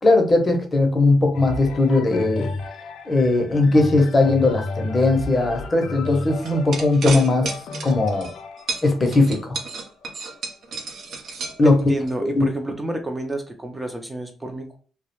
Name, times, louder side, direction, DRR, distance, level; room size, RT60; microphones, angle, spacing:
voice 1, 0.0-2.5 3.1-7.5 7.8-8.3 8.8-9.4 11.6-11.8 12.2-12.5, left 2 dB, 30° left, 3 dB, 0.7 m, -18 dB
sound 1, 1.3-11.1 11.8-11.9, left 3 dB, 70° left, 0.3 m, -34 dB
sound 2, 6.4-8.3 8.7-12.1, right 4 dB, 70° right, 0.6 m, -31 dB
voice 2, 11.6-14.8, right 2 dB, 15° right, 4 dB, 0.4 m, -29 dB
2.2 x 2.1 x 2.9 m, 0.40 s
cardioid pair, 90°, 0 cm